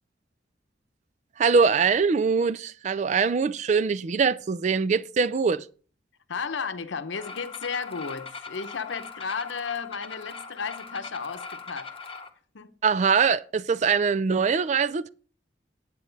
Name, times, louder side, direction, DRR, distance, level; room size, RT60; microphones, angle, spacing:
voice 1, 1.4-5.6 12.8-15.1, right 5 dB, 40° right, 0.3 m, -23 dB
voice 2, 6.3-11.9 12.5-12.7, left 5 dB, 85° left, 0.8 m, -33 dB
sound 1, 7.1-12.3, left 4 dB, 30° left, 1.0 m, -41 dB
9.2 x 8.5 x 3.9 m
head